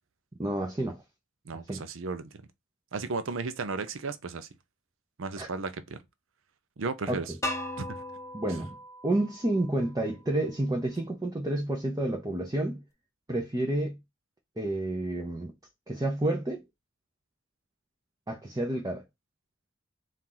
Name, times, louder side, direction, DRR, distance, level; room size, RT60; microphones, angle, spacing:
voice 1, 0.4-1.0 1.7-1.8 5.4-5.5 7.1-7.2 8.3-8.8 9.0-12.8 13.3-14.0 14.6-15.5 15.9-16.6 18.3-19.0, right 1 dB, 20° right, 0.7 m, -30 dB
voice 2, 1.5-2.3 2.9-4.5 5.2-6.0 6.8-7.3 7.8-8.0, right 4 dB, 70° right, 0.6 m, -34 dB
sound 1, 7.4-10.3, left 1 dB, 15° left, 0.7 m, -38 dB
4.3 x 2.5 x 3.8 m
head